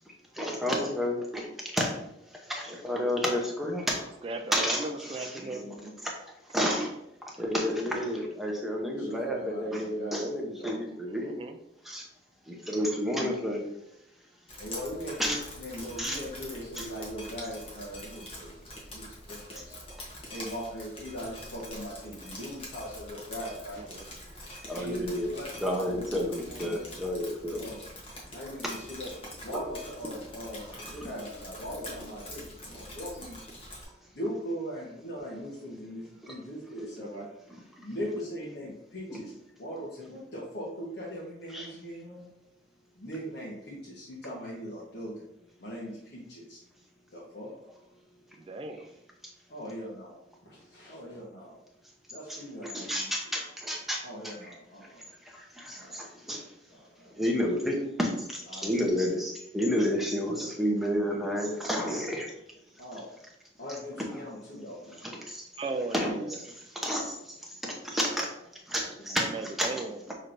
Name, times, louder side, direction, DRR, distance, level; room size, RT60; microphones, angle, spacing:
voice 1, 0.4-1.5 1.7-1.9 2.5-4.1 4.5-5.9 6.5-6.9 7.4-11.3 11.8-12.0 12.5-13.6 15.2-15.4 16.0-16.2 16.8-16.9 24.7-25.3 25.6-27.7 36.2-36.3 36.8-36.9 39.1-39.2 41.5-41.7 52.3-54.5 55.3-56.4 57.2-62.3 65.0-65.4 65.9-66.2 66.8-67.1 67.6-68.3 68.7-69.3 69.6-69.7, equal, ahead, -1 dB, 0.7 m, -30 dB
voice 2, 4.2-5.7 11.0-11.6 23.8-24.1 37.0-37.3 48.4-48.9 65.6-66.4 67.9-68.0 69.2-70.1, right 3 dB, 30° right, 5 dB, 0.3 m, -37 dB
voice 3, 8.9-11.0 14.6-19.7 20.3-23.9 24.7-26.8 27.6-27.8 28.3-29.1 29.4-33.4 34.1-37.3 37.8-39.3 39.6-42.3 42.9-45.2 45.6-46.6 47.1-47.5 49.5-51.6 52.1-53.1 54.0-55.1 55.8-56.0 56.7-57.2 58.5-59.0 59.7-60.1 62.8-63.1 63.6-65.1 69.0-69.2 69.7-69.8, equal, 60° left, -6 dB, 1.0 m, -40 dB
Drip, 14.5-33.8, left 1 dB, 30° left, 1.0 m, -45 dB
5.9 x 3.1 x 2.6 m, 0.81 s
head